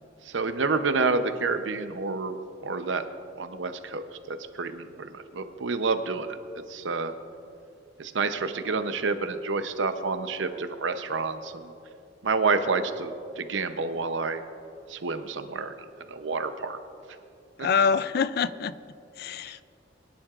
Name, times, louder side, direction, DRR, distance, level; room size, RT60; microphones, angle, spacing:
voice 1, 0.2-2.4 2.6-3.0 3.3-6.4 6.7-7.1 8.0-11.7 12.2-14.4 14.9-15.7 16.1-16.8 17.6-17.7, right 4 dB, 80° right, 9 dB, 0.7 m, -29 dB
voice 2, 17.6-18.7 19.2-19.6, left 6 dB, 55° left, 16 dB, 0.4 m, -25 dB
23.5 x 10.5 x 2.5 m, 2.6 s
head